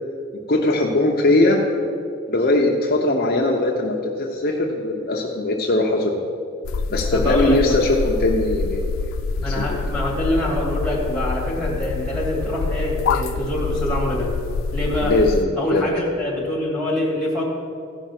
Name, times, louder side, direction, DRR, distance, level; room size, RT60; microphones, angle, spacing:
voice 1, 0.5-1.6 2.3-6.2 6.9-9.0 9.4-9.8 15.0-15.8, left 2 dB, 50° left, -1 dB, 0.8 m, -20 dB
sound 1, 6.6-15.4, left 4 dB, 85° left, 0.4 m, -26 dB
voice 2, 7.1-7.8 9.4-14.3 14.7-15.2 15.6-17.4, left 1 dB, 5° left, -4 dB, 2.5 m, -25 dB
15.0 x 5.5 x 6.0 m, 2.5 s
head